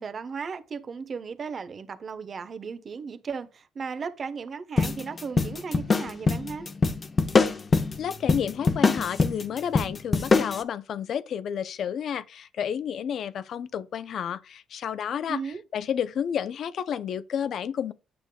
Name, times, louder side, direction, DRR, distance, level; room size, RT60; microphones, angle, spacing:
voice 1, 0.0-6.7 15.3-15.6, right 5 dB, 45° right, 1.0 m, -36 dB
sound 1, 4.8-10.6, left 4 dB, 35° left, 0.9 m, -24 dB
voice 2, 8.0-17.9, left 8 dB, 65° left, 0.6 m, -31 dB
9.3 x 6.8 x 2.3 m
cardioid pair, 90°, 0 cm